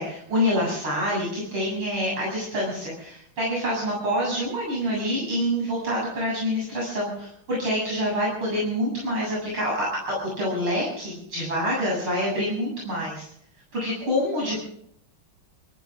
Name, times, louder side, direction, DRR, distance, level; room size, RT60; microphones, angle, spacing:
voice 1, 0.0-13.3 13.7-14.6, equal, 85° right, -4 dB, 8.6 m, -26 dB
26.0 x 14.5 x 3.7 m, 0.69 s
omnidirectional pair, 2.3 m